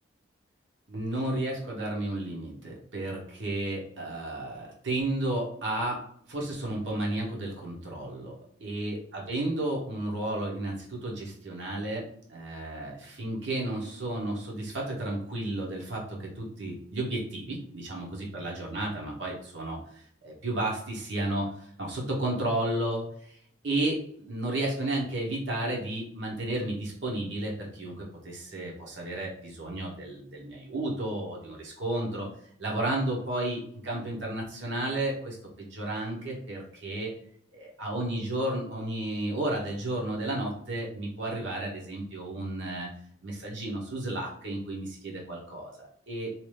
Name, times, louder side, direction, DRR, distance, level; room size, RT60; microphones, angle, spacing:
voice 1, 0.9-6.0 6.3-19.8 20.2-23.4 23.6-32.3 32.6-37.1 37.5-42.9 43.2-46.3, right 1 dB, 70° right, -2 dB, 0.9 m, -32 dB
2.8 x 2.3 x 3.2 m, 0.63 s
head